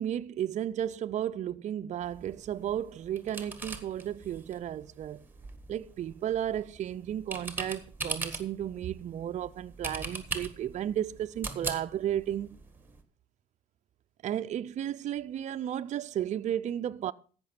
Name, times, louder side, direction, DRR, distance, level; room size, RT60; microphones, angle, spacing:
voice 1, 0.0-5.2 5.7-12.6 14.2-17.1, right 10 dB, 45° right, 0.5 m, -33 dB
sound 1, 2.0-13.0, right 3 dB, 10° right, 1.7 m, -41 dB
15.0 x 5.9 x 5.8 m
cardioid pair, 110°, 17 cm